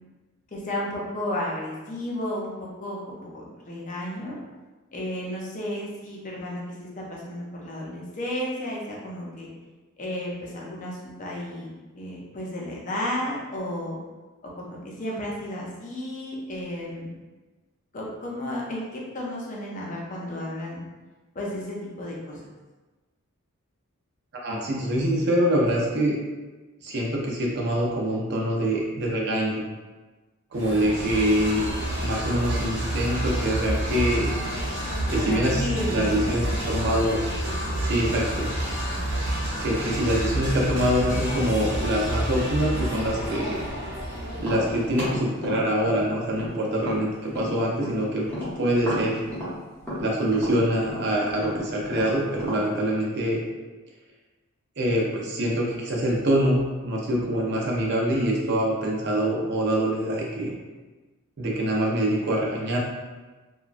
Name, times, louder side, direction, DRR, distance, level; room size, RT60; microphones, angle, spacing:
voice 1, 0.5-4.4 4.9-9.5 10.0-11.7 12.0-14.0 14.7-17.1 17.9-20.8 21.3-22.4 35.1-36.4, left 1 dB, 35° left, -4 dB, 0.5 m, -33 dB
voice 2, 24.3-26.2 26.8-29.6 30.5-34.3 35.1-37.2 37.8-38.5 39.6-43.6 44.4-48.3 48.6-49.2 50.0-53.4 54.8-60.5 61.4-62.8, equal, 50° right, -3 dB, 0.5 m, -25 dB
sound 1, 30.5-45.2, right 1 dB, 85° right, 0.9 m, -29 dB
Tap, 44.3-48.0 48.3-52.7, equal, 5° left, 0.8 m, -34 dB
2.9 x 2.2 x 2.4 m, 1.2 s
head